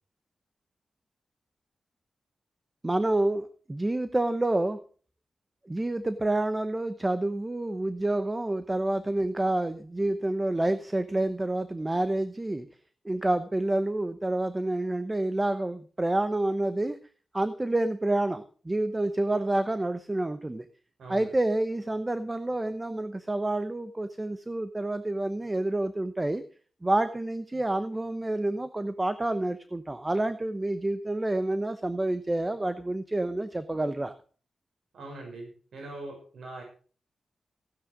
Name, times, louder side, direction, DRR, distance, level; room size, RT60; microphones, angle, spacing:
voice 1, 2.8-4.8 5.7-12.7 13.0-17.0 17.3-20.6 21.1-26.4 26.8-34.1, right 2 dB, 20° right, 11 dB, 0.9 m, -28 dB
voice 2, 21.0-21.3 34.9-36.6, right 2 dB, 85° right, 1 dB, 5.7 m, -42 dB
16.0 x 9.7 x 5.2 m, 0.42 s
wide cardioid pair, 100°, 0 cm